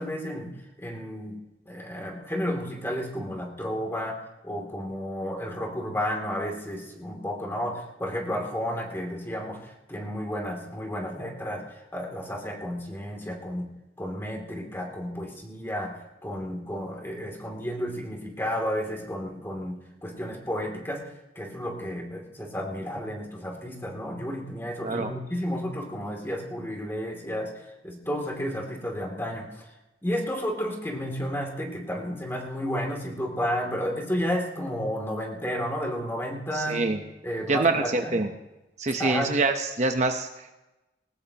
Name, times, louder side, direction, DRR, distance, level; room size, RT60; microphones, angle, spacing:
voice 1, 0.0-21.1 21.3-29.6 30.0-36.9 37.2-38.2 39.0-39.3, equal, 15° left, 1 dB, 2.7 m, -32 dB
voice 2, 36.5-37.0 37.5-38.3 38.8-40.5, right 3 dB, 40° right, 5 dB, 0.9 m, -25 dB
20.5 x 19.0 x 2.9 m, 1.0 s
head